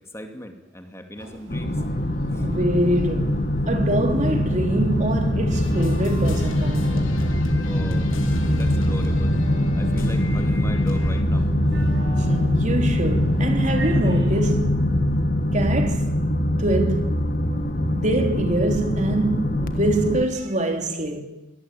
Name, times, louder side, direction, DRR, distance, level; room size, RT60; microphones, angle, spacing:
voice 1, 0.0-1.8 2.3-2.5 7.6-8.1 8.5-9.4 9.7-11.5, equal, 15° left, 2.5 m, -38 dB
sound 1, 1.2-14.4, right 1 dB, 65° right, 7.4 m, -42 dB
sound 2, 1.5-20.2, left 1 dB, 45° left, 1.8 m, -22 dB
voice 2, 2.4-7.3 12.3-14.9 15.5-16.1 16.6-17.2 17.9-21.2, right 1 dB, 40° right, 3.3 m, -25 dB
sound 3, 5.5-11.2, left 2 dB, 90° left, 4.2 m, -38 dB
24.0 x 19.0 x 9.1 m
head